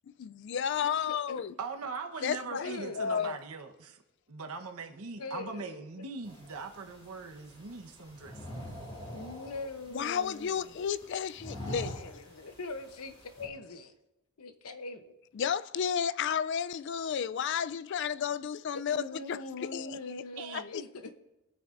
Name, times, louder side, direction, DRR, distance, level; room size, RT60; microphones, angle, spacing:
voice 1, 0.2-1.5 2.2-2.7 3.0-3.4 9.9-12.2 15.3-20.8, left 7 dB, 55° left, 0.3 m, -33 dB
voice 2, 1.6-4.0 4.3-8.5 20.4-20.6, right 4 dB, 80° right, 1.1 m, -41 dB
voice 3, 2.5-3.3 5.2-5.8 8.9-10.6 11.9-13.9 14.4-15.2 18.7-21.1, left 3 dB, 85° left, 0.9 m, -42 dB
sound 1, 6.2-13.5, equal, 25° left, 4.5 m, -45 dB
24.0 x 8.9 x 2.6 m
head